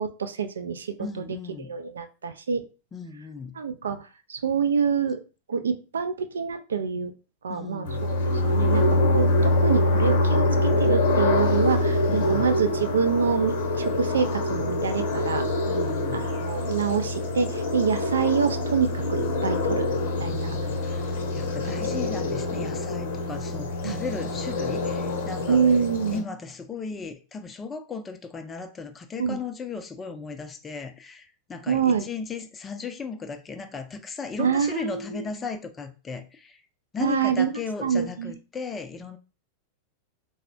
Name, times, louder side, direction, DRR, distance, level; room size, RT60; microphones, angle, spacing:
voice 1, 0.0-1.3 1.6-2.6 3.5-5.2 5.5-7.1 7.4-8.2 8.4-15.4 16.1-19.9 20.2-20.6 21.7-22.1 23.8-24.0 25.5-26.2 29.2-29.4 31.7-32.1 34.4-35.2 37.0-37.5 37.8-38.3, right 6 dB, 70° right, 0.3 m, -26 dB
voice 2, 1.0-1.7 2.9-3.6 7.5-8.0 12.1-12.5 15.7-16.3 20.2-25.6 26.1-36.6 36.9-39.2, left 5 dB, 20° left, 0.4 m, -36 dB
sound 1, 7.8-26.2, left 2 dB, 55° left, 0.7 m, -25 dB
3.5 x 2.0 x 2.5 m
figure-of-eight pair, 90°, 0 cm